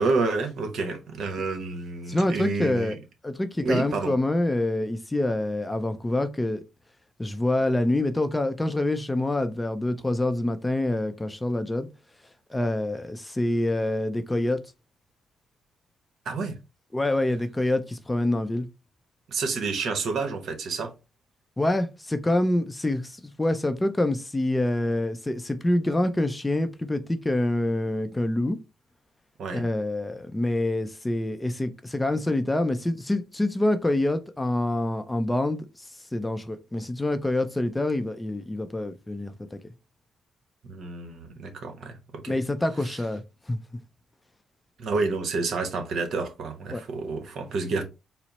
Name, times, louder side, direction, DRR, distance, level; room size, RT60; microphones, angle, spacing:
voice 1, 0.0-3.0 3.6-4.2 16.2-16.5 19.3-20.9 29.4-29.7 40.7-42.4 42.8-42.9 44.8-47.8, right 4 dB, 65° right, 1.0 m, -29 dB
voice 2, 2.1-3.0 3.2-6.6 7.2-11.9 12.5-14.6 16.9-18.7 21.6-28.6 29.5-35.7 36.1-39.6 42.3-43.2 43.5-43.6 46.7-46.8, left 1 dB, 15° left, 0.5 m, -26 dB
4.4 x 2.0 x 4.1 m
cardioid pair, 90°, 0 cm